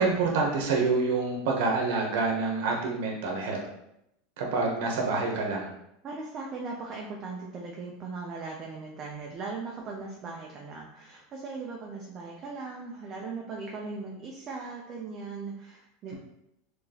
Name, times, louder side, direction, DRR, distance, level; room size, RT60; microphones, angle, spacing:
voice 1, 0.0-3.6 4.4-5.7, right 3 dB, 65° right, 0 dB, 0.8 m, -27 dB
voice 2, 6.0-16.1, right 4 dB, 25° right, -1 dB, 0.4 m, -39 dB
3.8 x 2.9 x 2.8 m, 0.80 s
supercardioid pair, 170°, 0 cm